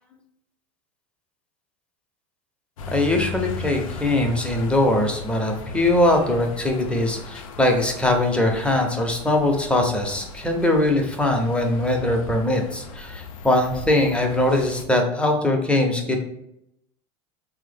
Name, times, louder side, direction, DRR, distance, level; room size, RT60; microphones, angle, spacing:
sound 1, 2.8-14.8, left 4 dB, 85° left, 0.4 m, -37 dB
voice 1, 2.9-16.2, left 1 dB, 5° left, 2 dB, 0.5 m, -21 dB
3.3 x 2.0 x 3.3 m, 0.80 s
hypercardioid pair, 100°, 17 cm